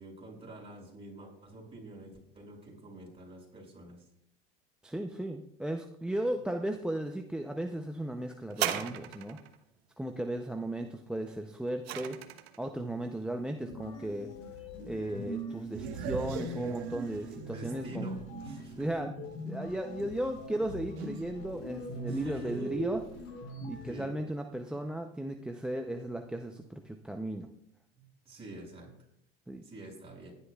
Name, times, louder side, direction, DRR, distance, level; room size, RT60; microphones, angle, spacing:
voice 1, 0.0-4.0 17.4-18.8 22.1-23.0 23.9-24.1 24.7-24.8 27.9-28.9 29.6-30.3, right 2 dB, 20° right, -2 dB, 6.1 m, -47 dB
voice 2, 4.8-9.4 10.0-12.2 12.6-14.3 14.8-18.1 18.8-19.1 19.4-23.0 23.7-27.5 29.5-29.6, right 1 dB, 5° right, 6 dB, 0.6 m, -35 dB
sound 1, 8.5-9.6 11.3-12.6 13.5-13.6, right 12 dB, 85° right, 1.2 m, -36 dB
sound 2, 13.6-23.9, equal, 65° left, 4.1 m, -41 dB
sound 3, 15.7-18.8 19.3-19.4 21.0-21.3, right 8 dB, 65° right, 1.4 m, -41 dB
20.5 x 11.5 x 2.3 m, 0.72 s
supercardioid pair, 115°, 30 cm